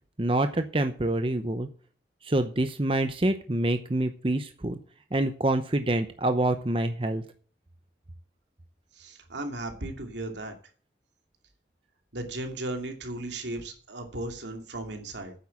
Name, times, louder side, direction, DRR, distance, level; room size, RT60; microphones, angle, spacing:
voice 1, 0.2-1.7 2.2-4.8 5.1-7.2, right 1 dB, 30° right, 8 dB, 0.8 m, -26 dB
voice 2, 8.9-10.5 12.1-15.3, right 2 dB, 85° right, 4 dB, 2.6 m, -36 dB
9.6 x 7.9 x 7.2 m, 0.42 s
head